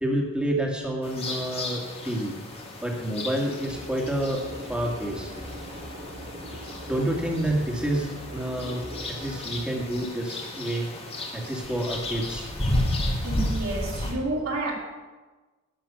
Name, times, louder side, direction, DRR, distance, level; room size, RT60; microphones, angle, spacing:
voice 1, 0.0-2.4 2.8-5.3 6.9-10.9 11.3-12.5, right 1 dB, 5° right, 0 dB, 2.0 m, -29 dB
sound 1, 1.0-14.1, left 1 dB, 30° left, 1.7 m, -33 dB
sound 2, 3.6-9.4, right 1 dB, 45° right, 1.9 m, -40 dB
voice 2, 13.2-14.7, right 2 dB, 80° right, -2 dB, 2.7 m, -30 dB
12.0 x 9.8 x 5.9 m, 1.3 s
head